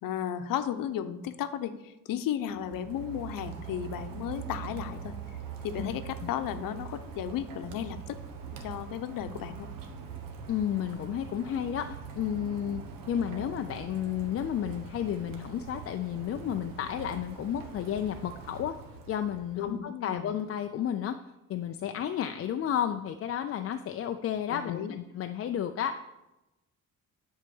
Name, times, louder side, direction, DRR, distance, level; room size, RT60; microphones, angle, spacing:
voice 1, 0.0-5.1 5.6-8.2 8.6-9.7 19.6-20.3 24.5-25.0, left 10 dB, 85° left, 11 dB, 0.8 m, -34 dB
Rain, 2.4-19.7, right 7 dB, 90° right, 1.4 m, -43 dB
voice 2, 10.5-18.8 19.1-21.2 21.5-26.0, left 9 dB, 45° left, 7 dB, 0.4 m, -32 dB
10.5 x 4.7 x 7.0 m, 0.98 s
cardioid pair, 150°, 33 cm